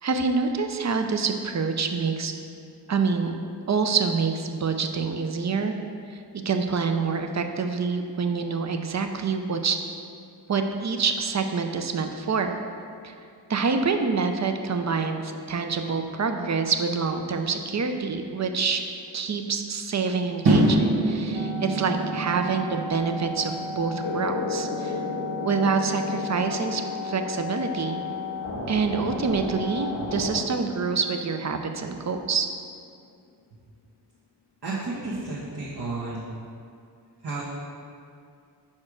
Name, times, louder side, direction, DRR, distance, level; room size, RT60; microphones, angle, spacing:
voice 1, 0.0-2.3 2.9-3.4 3.7-5.7 6.1-9.8 10.5-12.6 13.0-13.1 13.5-18.8 19.1-25.0 25.4-28.0 28.7-32.5, right 5 dB, 40° right, 6 dB, 0.6 m, -26 dB
sound 1, 20.4-26.7, right 1 dB, 90° right, 1.5 m, -28 dB
sound 2, 21.3-30.4, left 3 dB, 85° left, 1.6 m, -34 dB
sound 3, 24.0-31.2, left 4 dB, 50° left, 0.5 m, -36 dB
voice 2, 34.6-36.3 37.2-37.4, right 3 dB, 65° right, -8 dB, 1.3 m, -32 dB
4.9 x 4.4 x 6.0 m, 2.3 s
cardioid pair, 50°, 43 cm